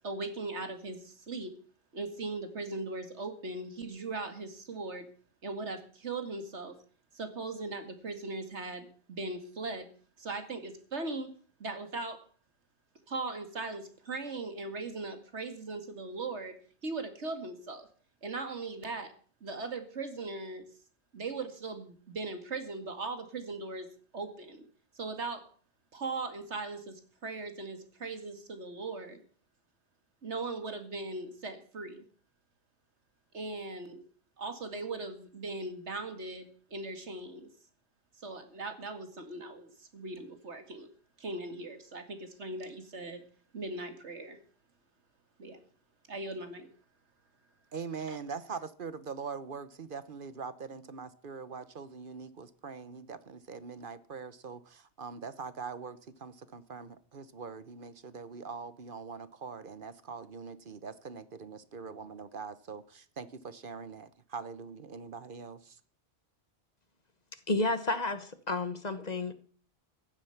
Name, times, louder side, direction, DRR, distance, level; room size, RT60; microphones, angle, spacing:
voice 1, 0.0-1.6 1.9-5.1 5.4-6.8 7.1-9.9 10.2-11.3 11.6-12.3 13.1-16.6 16.8-17.9 18.2-19.1 19.4-20.7 21.1-24.7 24.9-25.5 25.9-29.2 30.2-32.0 33.3-34.0 34.4-37.5 38.2-40.9 41.2-43.2 43.5-44.4 45.4-45.6 46.1-46.7 48.1-48.2, right 3 dB, 80° right, 2.4 m, -39 dB
voice 2, 47.7-65.8, right 5 dB, 50° right, 1.1 m, -43 dB
voice 3, 67.5-69.3, left 2 dB, 40° left, 1.2 m, -31 dB
15.0 x 11.0 x 5.8 m
omnidirectional pair, 1.1 m